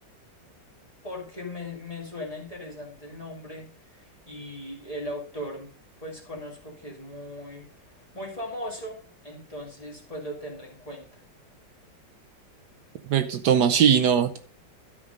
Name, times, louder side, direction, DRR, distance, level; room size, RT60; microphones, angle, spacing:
voice 1, 1.0-5.7 6.0-11.2, left 1 dB, 20° left, -2 dB, 2.2 m, -38 dB
voice 2, 13.1-14.4, right 8 dB, 70° right, 7 dB, 1.2 m, -20 dB
12.5 x 5.1 x 5.2 m, 0.44 s
omnidirectional pair, 2.0 m